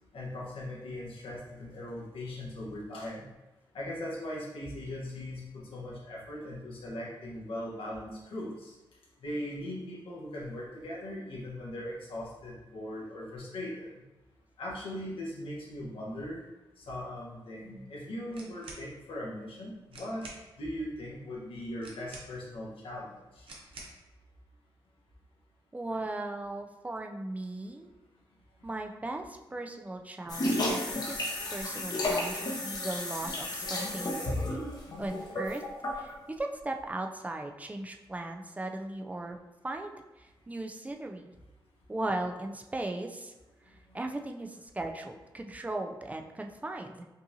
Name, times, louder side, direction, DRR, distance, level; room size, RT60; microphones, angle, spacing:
voice 1, 0.1-3.3 3.7-8.7 9.2-13.9 14.6-16.4 16.8-20.3 20.6-23.5 28.6-28.7 43.9-44.0, left 1 dB, 80° left, -5 dB, 1.3 m, -39 dB
sound 1, 18.3-18.9 19.6-19.7 19.9-20.4 21.8-22.6 23.4-24.0, right 2 dB, 80° right, 0.8 m, -48 dB
voice 2, 25.7-27.9 28.6-31.3 31.5-34.2 35.0-35.6 36.0-39.4 39.6-41.4 41.9-43.3 43.7-47.0, right 2 dB, 15° right, 3 dB, 0.4 m, -37 dB
sound 2, 30.3-36.1, left 1 dB, 50° left, 0.9 m, -32 dB
5.4 x 2.5 x 2.8 m, 1.1 s
cardioid pair, 80°, 9 cm